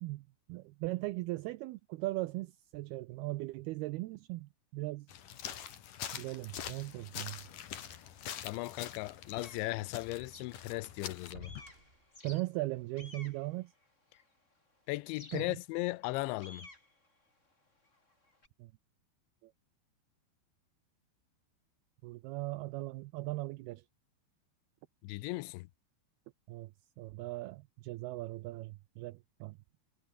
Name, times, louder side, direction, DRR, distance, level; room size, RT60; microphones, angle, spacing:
voice 1, 0.0-5.1 6.1-7.4 12.2-13.7 15.3-15.6 18.6-18.7 19.4-19.5 22.0-23.8 26.5-26.7 27.0-29.6, right 19 dB, 85° right, 2.2 m, -39 dB
sound 1, 5.1-11.3, left 9 dB, 55° left, 3.1 m, -45 dB
sound 2, 6.5-9.7 10.0-10.1 10.4-10.5 10.8-12.9, right 1 dB, 10° right, 6.3 m, -59 dB
voice 2, 8.4-11.6 14.9-16.7 25.0-25.7, left 20 dB, 85° left, 3.0 m, -37 dB
sound 3, 9.2-11.1 11.4-14.5 15.1-18.5, left 2 dB, 15° left, 5.4 m, -56 dB
omnidirectional pair, 5.3 m